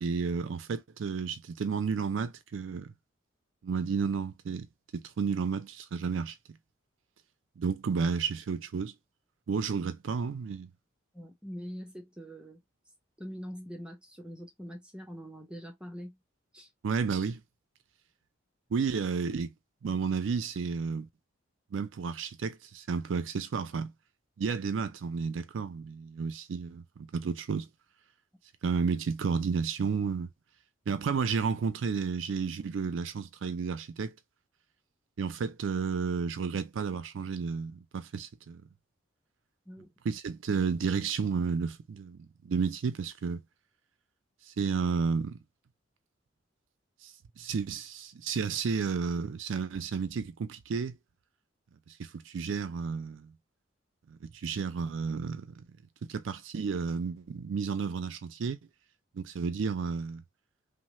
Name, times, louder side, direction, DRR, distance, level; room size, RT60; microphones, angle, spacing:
voice 1, 0.0-2.9 3.6-4.7 4.9-6.4 7.6-8.9 9.5-10.7 16.8-17.4 18.7-19.5 19.8-21.1 21.7-23.9 24.4-27.7 28.6-30.3 30.9-34.1 35.2-38.6 40.1-42.2 42.4-43.4 44.5-45.4 47.0-51.0 51.9-53.3 54.1-55.6 56.0-58.6 59.1-60.2, right 5 dB, 70° right, 0.4 m, -32 dB
voice 2, 11.1-12.6 13.2-16.2 16.5-16.7 39.7-39.9, equal, 5° right, 0.7 m, -43 dB
3.1 x 2.0 x 2.9 m
head